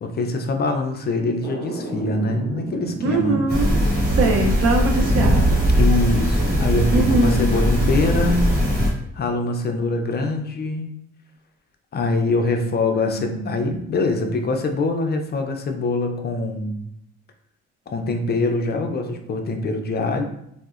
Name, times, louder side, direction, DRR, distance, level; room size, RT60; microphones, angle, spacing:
voice 1, 0.0-3.4 5.8-8.6 9.1-10.9 11.9-16.8 17.9-20.2, left 2 dB, 35° left, 4 dB, 0.4 m, -23 dB
sound 1, 1.4-7.5, right 1 dB, 10° right, 1.1 m, -34 dB
voice 2, 3.0-3.8 4.1-5.6 6.9-7.3 13.0-13.5, right 2 dB, 50° right, 2 dB, 0.6 m, -21 dB
sound 2, 3.5-8.9, equal, 35° right, 1.4 m, -19 dB
3.6 x 2.0 x 2.4 m, 0.76 s
cardioid pair, 90°, 30 cm